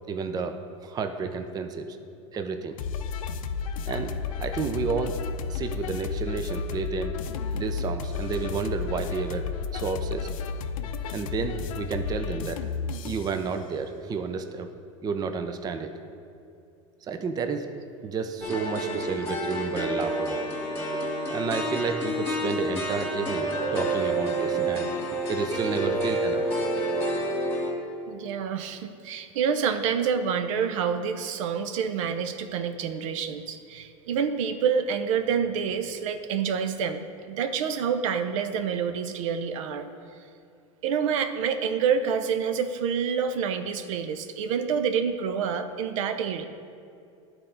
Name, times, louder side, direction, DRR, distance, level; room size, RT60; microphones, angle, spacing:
voice 1, 0.1-0.6 0.8-1.9 2.3-2.8 3.9-4.1 4.4-5.2 5.5-7.1 7.5-9.5 9.7-10.3 11.1-12.6 13.0-14.7 15.0-15.9 17.1-17.7 18.0-20.8 21.3-24.9 25.3-26.4, right 5 dB, 25° right, 7 dB, 0.5 m, -31 dB
sound 1, 2.8-13.4, left 5 dB, 80° left, 0.5 m, -32 dB
sound 2, 18.4-27.7, right 1 dB, 15° left, 1.8 m, -28 dB
voice 2, 28.1-39.9 40.8-46.4, right 7 dB, 70° right, 9 dB, 0.6 m, -27 dB
11.0 x 4.4 x 3.8 m, 2.5 s
hypercardioid pair, 110°, 17 cm